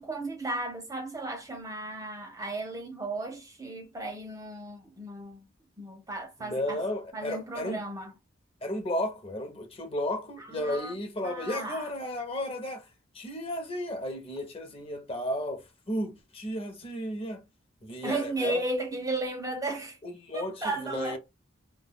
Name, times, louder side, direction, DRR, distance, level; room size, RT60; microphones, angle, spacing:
voice 1, 0.0-5.5 5.8-6.8 7.1-8.1 10.4-10.9 11.2-11.9 18.0-20.0 20.3-21.2, right 2 dB, 15° right, 0.5 m, -35 dB
voice 2, 6.4-7.8 8.6-12.9 13.1-17.4 17.8-18.6 20.0-21.2, left 1 dB, 30° left, 0.7 m, -34 dB
2.2 x 2.2 x 3.5 m
head